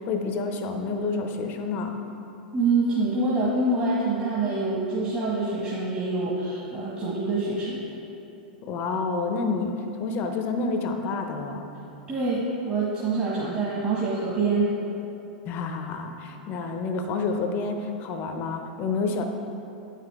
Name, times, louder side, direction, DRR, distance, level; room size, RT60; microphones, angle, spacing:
voice 1, 0.0-2.0 8.6-11.7 15.4-19.3, left 4 dB, 45° left, 5 dB, 0.7 m, -29 dB
voice 2, 2.5-7.8 12.1-14.7, right 3 dB, 30° right, -8 dB, 1.6 m, -25 dB
8.6 x 5.8 x 3.5 m, 2.8 s
hypercardioid pair, 105°, 5 cm